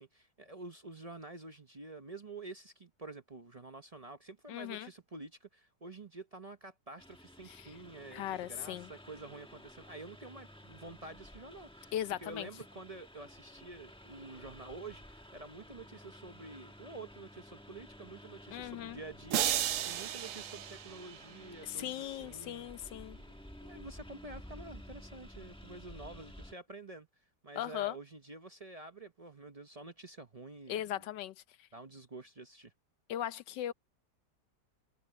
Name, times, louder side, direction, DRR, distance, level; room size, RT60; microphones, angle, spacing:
voice 1, 0.0-11.9 12.2-22.7 23.2-23.3 23.6-27.1 27.4-31.1 31.7-32.7, right 2 dB, 35° right, 0.6 m, -49 dB
voice 2, 4.5-4.9 7.5-7.6 8.1-8.9 11.9-12.5 18.5-19.0 21.6-23.2 27.6-28.0 30.7-31.3 33.1-33.7, left 12 dB, 85° left, 1.4 m, -38 dB
Engine, 7.0-26.5, equal, 5° left, 1.2 m, -53 dB
sound 1, 19.3-21.6, right 11 dB, 65° right, 0.8 m, -34 dB
omnidirectional pair, 1.9 m